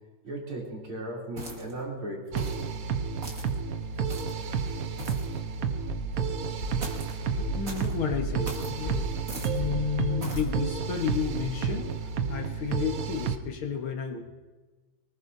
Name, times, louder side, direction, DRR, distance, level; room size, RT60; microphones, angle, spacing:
voice 1, 0.2-2.5 4.8-5.5, right 1 dB, 80° right, -3 dB, 4.1 m, -37 dB
sound 1, 1.4-1.8 2.4-2.7 3.2-3.5 4.1-4.4 5.0-5.3 6.8-7.2 7.6-7.9 8.4-8.7 9.3-9.6 10.2-10.5, right 2 dB, 40° right, 2.4 m, -40 dB
sound 2, 2.3-13.4, right 6 dB, 60° right, 0.9 m, -31 dB
sound 3, 5.9-11.7, right 1 dB, 35° left, 2.3 m, -37 dB
voice 2, 7.5-9.1 9.5-11.9 12.3-14.2, left 6 dB, 75° left, 3 dB, 2.3 m, -31 dB
24.0 x 19.0 x 2.7 m, 1.2 s
omnidirectional pair, 2.3 m